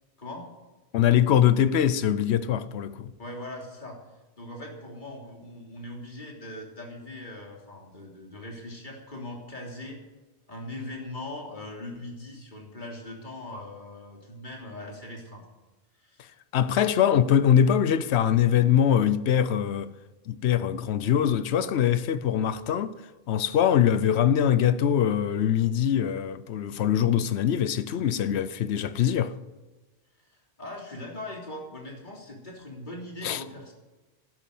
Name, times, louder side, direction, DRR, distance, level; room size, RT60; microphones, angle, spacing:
voice 1, 0.9-3.1 16.5-19.9 20.3-23.0 23.3-29.3 33.2-33.4, left 9 dB, 85° left, 0.9 m, -23 dB
voice 2, 3.2-4.0 4.4-10.0 10.5-15.4 16.0-16.3 30.3-33.7, left 1 dB, 45° left, 3.5 m, -40 dB
12.5 x 11.0 x 7.8 m
omnidirectional pair, 1.1 m